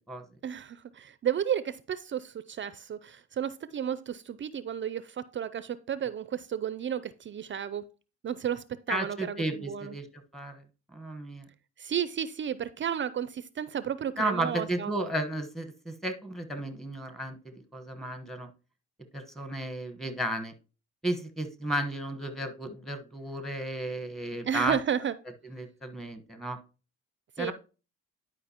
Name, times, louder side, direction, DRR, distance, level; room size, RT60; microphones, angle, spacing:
voice 1, 0.4-7.9 8.2-9.9 11.8-14.9 24.4-25.2 27.4-27.5, right 9 dB, 40° right, 0.4 m, -33 dB
voice 2, 8.9-10.6 10.9-11.5 14.2-18.5 19.1-20.5 21.0-24.8 25.5-26.6 27.4-27.5, right 1 dB, ahead, 1.2 m, -33 dB
11.0 x 4.9 x 2.9 m
cardioid pair, 90°, 30 cm